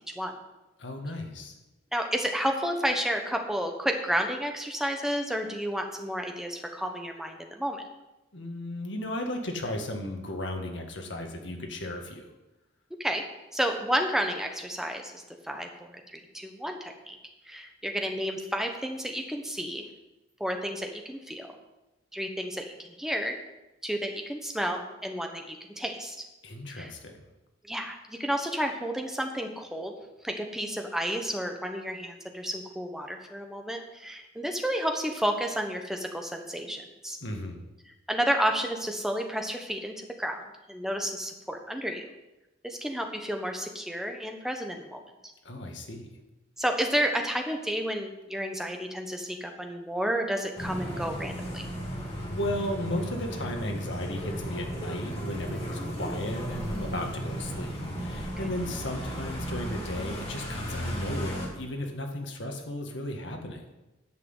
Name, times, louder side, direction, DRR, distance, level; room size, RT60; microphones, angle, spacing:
voice 1, 0.8-1.5 8.3-12.2 26.4-27.2 37.2-37.6 45.4-46.1 52.3-63.7, left 1 dB, 70° left, 3 dB, 1.8 m, -35 dB
voice 2, 1.9-7.9 13.0-13.2 13.5-17.2 17.5-19.8 20.4-21.5 22.1-23.3 23.8-26.2 26.7-26.9 27.6-29.9 30.2-37.2 38.1-40.4 40.7-42.1 42.6-45.0 46.6-51.6 56.8-57.0, equal, ahead, 3 dB, 1.2 m, -31 dB
sound 1, 50.6-61.5, equal, 30° left, 3.0 m, -35 dB
10.5 x 5.9 x 8.1 m, 1.0 s
head